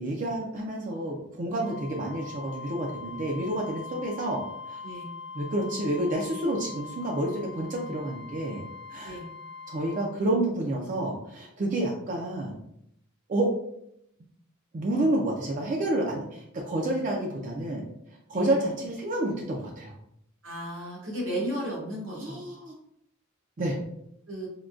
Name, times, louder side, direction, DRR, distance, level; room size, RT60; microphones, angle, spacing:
voice 1, 0.0-4.8 5.3-8.6 8.9-9.2 9.7-12.5 13.3-13.5 14.7-17.8 18.3-20.0 22.2-22.7 23.6-23.8, right 1 dB, 40° right, -1 dB, 0.4 m, -29 dB
Wind instrument woodwind instrument, 1.6-10.1, left 5 dB, 25° left, 0.6 m, -42 dB
voice 2, 4.8-5.1 9.0-9.3 18.3-18.5 20.4-22.4 24.3-24.5, right 1 dB, 85° right, -5 dB, 1.3 m, -34 dB
3.6 x 2.2 x 2.4 m, 0.74 s
head